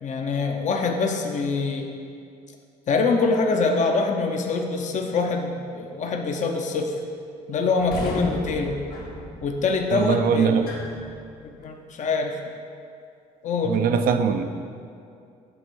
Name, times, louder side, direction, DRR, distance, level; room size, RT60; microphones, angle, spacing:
voice 1, 0.0-1.9 2.9-7.0 7.5-8.8 9.4-10.7 11.4-12.4 13.4-13.8, left 4 dB, 45° left, 3 dB, 0.7 m, -24 dB
sound 1, 7.8-11.7, left 2 dB, 65° left, 1.3 m, -35 dB
voice 2, 9.9-10.7 13.7-14.5, right 7 dB, 60° right, 8 dB, 0.5 m, -21 dB
7.9 x 3.4 x 6.1 m, 2.4 s
supercardioid pair, 70°, 17 cm